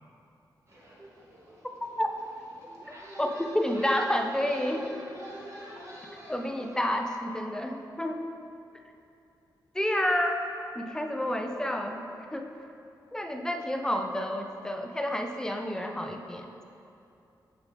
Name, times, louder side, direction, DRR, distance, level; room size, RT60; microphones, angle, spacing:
sound 1, 0.7-6.9, equal, 35° right, 1.1 m, -46 dB
voice 1, 3.2-4.9 6.3-8.2 9.7-10.4 10.7-12.0 12.3-12.5 13.1-16.6, left 1 dB, 10° left, 4 dB, 0.3 m, -29 dB
6.4 x 5.1 x 3.3 m, 2.6 s
wide cardioid pair, 140°, 8 cm